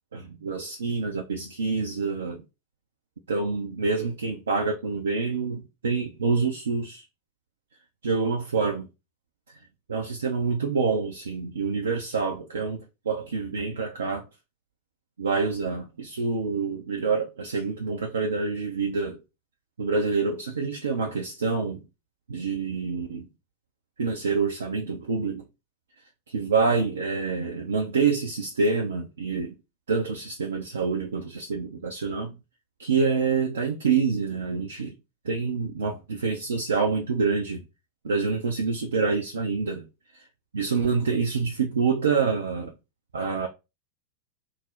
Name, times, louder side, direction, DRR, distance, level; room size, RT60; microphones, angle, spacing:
voice 1, 0.1-2.4 3.3-7.0 8.0-8.9 9.9-14.2 15.2-19.2 19.8-21.8 22.3-23.2 24.0-25.4 26.3-29.5 29.9-32.4 32.8-34.9 35.2-37.6 38.0-39.9 40.5-42.7 43.1-43.5, right 4 dB, 70° right, 0.4 m, -27 dB
2.4 x 2.0 x 3.9 m
figure-of-eight pair, 90°, 0 cm